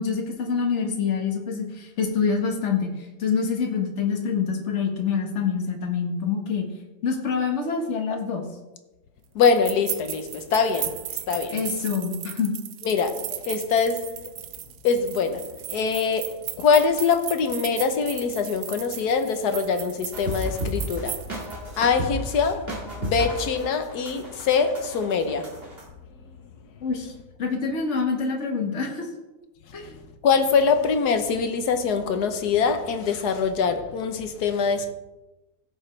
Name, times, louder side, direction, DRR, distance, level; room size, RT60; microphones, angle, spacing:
voice 1, 0.0-2.9 3.2-6.7 7.0-8.4 11.5-12.5 26.8-27.1 27.4-29.1 29.7-30.0, left 5 dB, 45° left, 1.7 m, -26 dB
voice 2, 9.3-11.6 12.8-14.2 14.8-21.3 21.8-25.6 30.2-34.9, left 5 dB, 75° left, 1.5 m, -23 dB
sound 1, 9.4-21.6, right 12 dB, 70° right, 1.1 m, -36 dB
sound 2, 20.1-25.8, equal, 35° right, 2.4 m, -33 dB
16.0 x 6.8 x 3.3 m
omnidirectional pair, 1.7 m